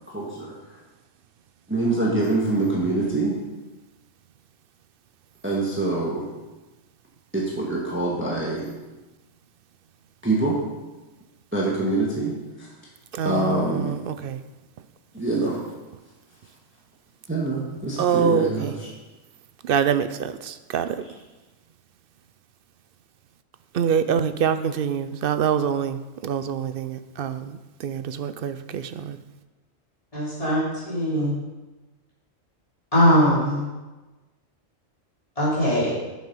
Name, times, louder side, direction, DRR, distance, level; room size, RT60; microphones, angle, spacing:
voice 1, 0.1-0.8 1.7-3.4 5.4-6.3 7.3-8.7 10.2-10.6 11.5-12.7 13.2-13.9 15.1-15.6 17.3-18.9, right 2 dB, 10° right, -4 dB, 1.6 m, -25 dB
voice 2, 13.1-14.4 18.0-18.7 19.6-21.0 23.7-29.2, right 7 dB, 60° right, 11 dB, 0.6 m, -25 dB
voice 3, 30.1-31.3 32.9-33.7 35.4-35.9, equal, 25° left, -9 dB, 3.8 m, -21 dB
9.2 x 7.2 x 5.4 m, 1.1 s
omnidirectional pair, 1.3 m